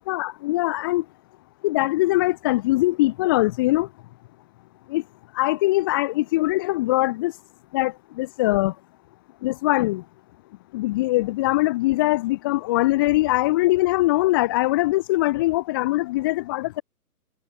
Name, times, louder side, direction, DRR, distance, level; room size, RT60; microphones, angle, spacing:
voice 1, 0.1-1.0 1.6-3.9 4.9-5.0 5.3-7.3 7.7-8.7 9.4-10.0 10.7-16.8, left 19 dB, 15° left, 1.6 m, -22 dB
hypercardioid pair, 170°, 47 cm